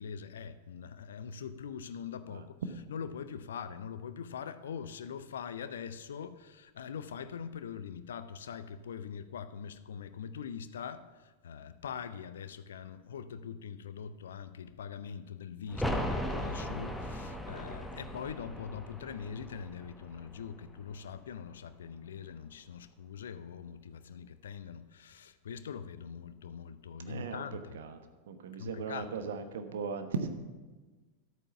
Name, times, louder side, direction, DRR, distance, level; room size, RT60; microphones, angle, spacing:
voice 1, 0.0-2.5 2.9-27.8 28.6-29.1, left 7 dB, 65° left, 13 dB, 0.6 m, -43 dB
sound 1, 15.7-21.3 21.5-21.6, equal, ahead, 1.2 m, -38 dB
voice 2, 27.0-28.0 28.3-30.3, right 5 dB, 60° right, 8 dB, 1.1 m, -38 dB
11.5 x 8.7 x 5.8 m, 1.3 s
figure-of-eight pair, 90°, 0 cm